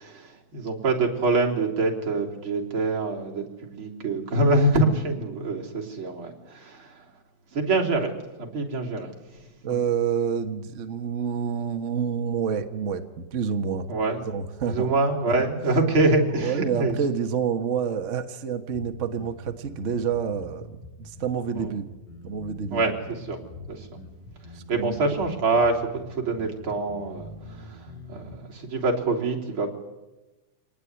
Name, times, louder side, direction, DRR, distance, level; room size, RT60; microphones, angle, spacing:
voice 1, 0.0-7.1 7.5-8.1 8.4-9.8 13.9-14.2 14.7-17.0 21.5-21.8 22.7-23.4 23.7-23.9 24.7-29.7, right 2 dB, 40° right, -1 dB, 4.2 m, -25 dB
voice 2, 9.6-13.9 14.3-14.9 16.4-21.9 22.2-22.8 24.5-25.1, right 7 dB, 65° right, 7 dB, 0.7 m, -28 dB
sound 1, 18.7-28.3, left 2 dB, 75° left, 7.0 m, -44 dB
26.5 x 19.0 x 9.6 m, 1.1 s
omnidirectional pair, 3.7 m